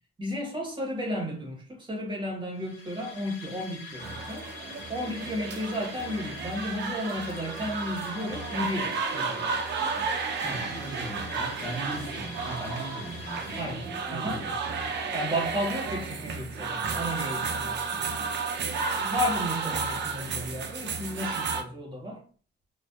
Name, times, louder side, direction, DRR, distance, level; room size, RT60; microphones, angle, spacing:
voice 1, 0.2-4.5 4.9-9.5 13.6-13.8 14.1-14.4 15.1-18.3 19.0-22.2, equal, 25° right, 0.9 m, -33 dB
sound 1, 2.5-14.3, left 4 dB, 75° left, 0.8 m, -44 dB
sound 2, 4.0-21.6, right 4 dB, 60° right, 0.5 m, -32 dB
voice 2, 10.4-14.6, right 1 dB, 15° left, 1.0 m, -38 dB
2.5 x 2.1 x 2.3 m
cardioid pair, 90°, 20 cm